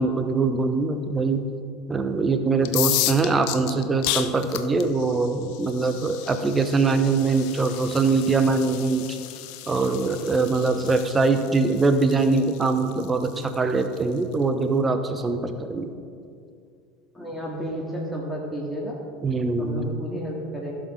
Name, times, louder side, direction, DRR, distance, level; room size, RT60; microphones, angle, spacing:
voice 1, 0.0-1.5 1.9-9.2 9.7-15.9 19.2-19.9, right 3 dB, 20° right, 8 dB, 0.9 m, -23 dB
sound 1, 2.6-14.3, left 13 dB, 55° left, 0.5 m, -33 dB
voice 2, 17.1-19.0 19.6-20.8, equal, 5° left, -4 dB, 1.9 m, -32 dB
15.5 x 6.5 x 3.7 m, 2.3 s
figure-of-eight pair, 70°, 0 cm